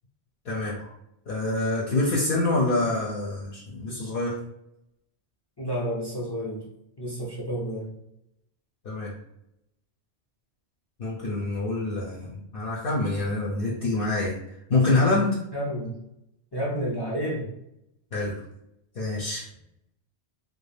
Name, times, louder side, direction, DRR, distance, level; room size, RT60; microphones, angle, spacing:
voice 1, 0.4-0.9 1.3-4.4 8.8-9.1 11.0-14.4 14.7-15.4 18.1-18.3 19.0-19.5, left 2 dB, 60° left, -5 dB, 0.7 m, -26 dB
voice 2, 5.6-6.7 7.0-7.9 15.5-15.9 16.5-17.5, equal, 35° left, -5 dB, 0.4 m, -30 dB
2.4 x 2.2 x 3.2 m, 0.81 s
omnidirectional pair, 1.2 m